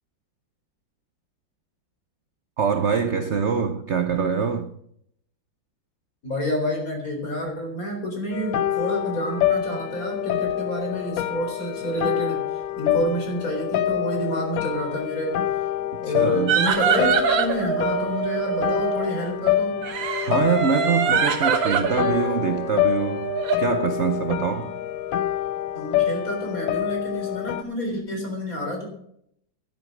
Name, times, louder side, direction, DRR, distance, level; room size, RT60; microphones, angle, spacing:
voice 1, 2.6-4.7 16.0-16.6 20.2-24.8, right 6 dB, 55° right, 9 dB, 0.8 m, -24 dB
voice 2, 6.2-12.4 12.8-15.4 16.0-19.9 25.7-28.8, equal, 45° left, 2 dB, 4.5 m, -28 dB
sound 1, 8.3-27.6, left 11 dB, 90° left, 1.4 m, -26 dB
sound 2, 16.5-19.1 19.8-23.6, right 8 dB, 90° right, 1.9 m, -25 dB
11.5 x 11.0 x 6.2 m, 0.71 s
omnidirectional pair, 2.0 m